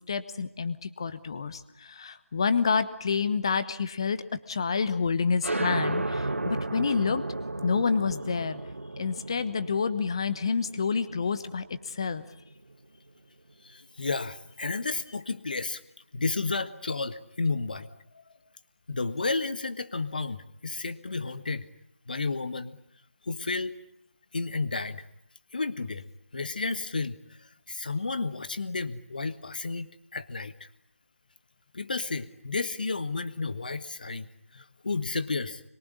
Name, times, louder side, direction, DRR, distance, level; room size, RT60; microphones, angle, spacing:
voice 1, 0.1-7.2 7.6-8.6 9.0-12.2, left 5 dB, 20° left, 12 dB, 1.1 m, -28 dB
sound 1, 5.4-12.7, right 2 dB, 65° right, 1.8 m, -34 dB
voice 2, 13.6-15.8 16.1-17.9 18.9-21.7 22.1-22.8 23.2-23.8 24.3-25.0 25.5-26.0 26.3-30.7 31.7-34.3 34.5-35.6, left 3 dB, 40° left, 12 dB, 1.5 m, -32 dB
26.0 x 23.0 x 9.7 m, 0.75 s
figure-of-eight pair, 165°, 7 cm